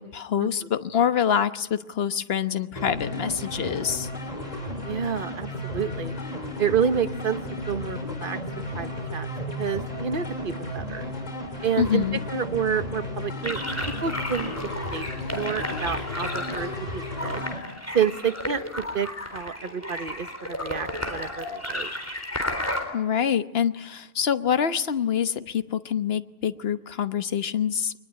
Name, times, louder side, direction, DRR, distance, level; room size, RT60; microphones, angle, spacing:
voice 1, 0.0-4.1 11.8-12.2 22.9-27.9, left 8 dB, 60° left, 11 dB, 1.3 m, -25 dB
sound 1, 2.8-17.6, left 1 dB, 35° left, 3.2 m, -34 dB
voice 2, 4.8-6.2 6.6-7.4 7.7-9.3 9.6-11.0 11.6-13.6 14.0-14.5 14.9-17.4 17.9-18.6 18.9-21.9, right 7 dB, 50° right, 11 dB, 1.3 m, -29 dB
sound 2, 13.4-22.8, left 1 dB, 15° left, 4.0 m, -33 dB
24.0 x 20.5 x 10.0 m, 0.94 s
omnidirectional pair, 1.2 m